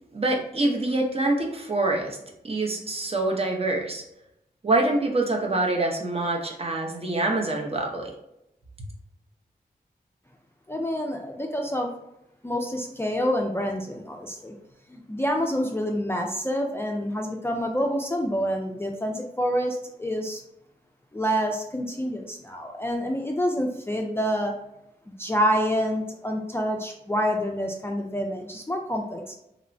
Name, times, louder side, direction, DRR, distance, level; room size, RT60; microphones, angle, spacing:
voice 1, 0.1-2.2 2.4-4.0 4.6-8.1, right 2 dB, 35° right, 0 dB, 0.7 m, -25 dB
voice 2, 10.7-11.9 12.4-14.5 14.9-20.4 21.1-24.5 25.2-29.4, equal, 15° left, 1 dB, 0.3 m, -27 dB
3.0 x 2.0 x 2.6 m, 0.82 s
cardioid pair, 50°, 17 cm